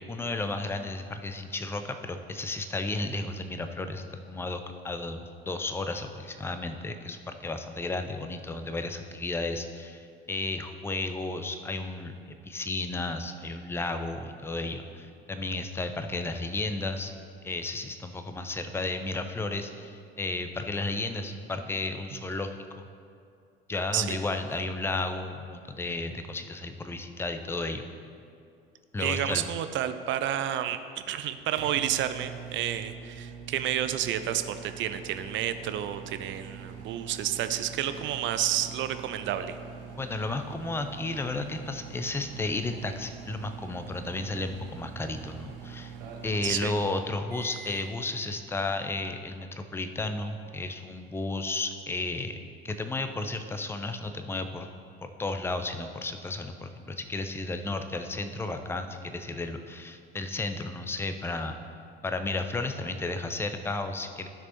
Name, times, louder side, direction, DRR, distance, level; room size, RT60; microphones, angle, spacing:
voice 1, 0.1-17.1 17.4-22.5 23.7-27.9 28.9-29.5 40.0-45.9 46.2-52.4 52.6-54.7 55.0-61.6 62.0-64.3, left 2 dB, 10° left, 7 dB, 0.5 m, -33 dB
voice 2, 29.0-30.8 31.1-39.6 46.4-46.7, right 11 dB, 40° right, 10 dB, 0.5 m, -30 dB
sound 1, 31.0-47.9, right 7 dB, 70° right, 0.9 m, -44 dB
12.5 x 6.1 x 2.9 m, 2.4 s
figure-of-eight pair, 60°, 29 cm